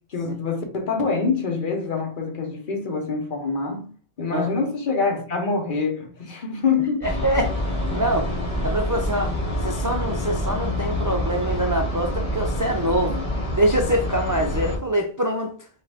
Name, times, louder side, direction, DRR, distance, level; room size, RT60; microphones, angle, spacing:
voice 1, 0.1-3.8 4.2-7.2 13.1-13.2, left 4 dB, 50° left, 1.1 m, -25 dB
sound 1, 7.0-14.8, left 1 dB, 35° left, 1.2 m, -26 dB
voice 2, 7.0-7.5 7.9-8.3 8.6-9.3 9.6-13.2 13.5-15.5, right 1 dB, 35° right, 0.3 m, -24 dB
5.6 x 2.5 x 3.5 m
omnidirectional pair, 1.1 m